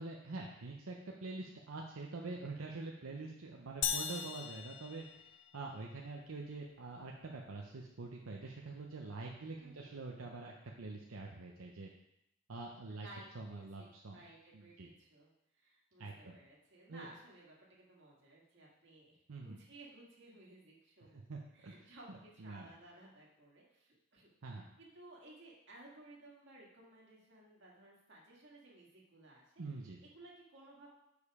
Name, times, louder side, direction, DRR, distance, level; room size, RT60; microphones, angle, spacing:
voice 1, 0.0-11.9 12.5-13.1 13.3-14.2 14.5-14.9 16.0-16.4 16.9-17.1 19.3-19.6 21.3-21.7 22.1-22.7 24.4-24.6 29.6-30.0, right 3 dB, 85° right, -1 dB, 0.8 m, -45 dB
sound 1, 3.8-5.8, left 8 dB, 60° left, 0.5 m, -39 dB
voice 2, 9.6-9.9 12.9-21.2 21.5-24.3 24.8-29.5 30.0-30.9, right 1 dB, 60° right, -3 dB, 2.0 m, -58 dB
6.6 x 5.3 x 4.9 m, 0.82 s
head